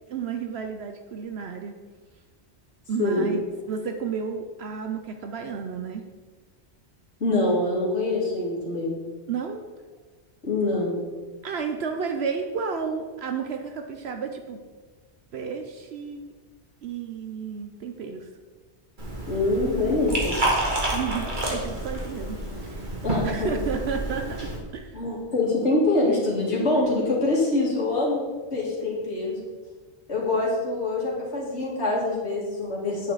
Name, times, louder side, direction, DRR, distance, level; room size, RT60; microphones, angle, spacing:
voice 1, 0.1-1.8 2.9-3.4 3.7-6.0 9.3-9.6 11.4-14.6 15.3-16.3 16.8-18.3 20.9-22.9 23.2-25.0, right 6 dB, 70° right, 5 dB, 0.9 m, -32 dB
voice 2, 3.0-3.3 7.2-9.0 10.4-11.0 19.3-20.4 23.0-23.5 24.9-28.2 28.5-29.4 30.1-33.1, left 2 dB, 80° left, -5 dB, 2.5 m, -24 dB
Liquid, 19.0-24.6, right 1 dB, 45° right, 1.9 m, -29 dB
9.3 x 7.7 x 4.0 m, 1.4 s
omnidirectional pair, 1.1 m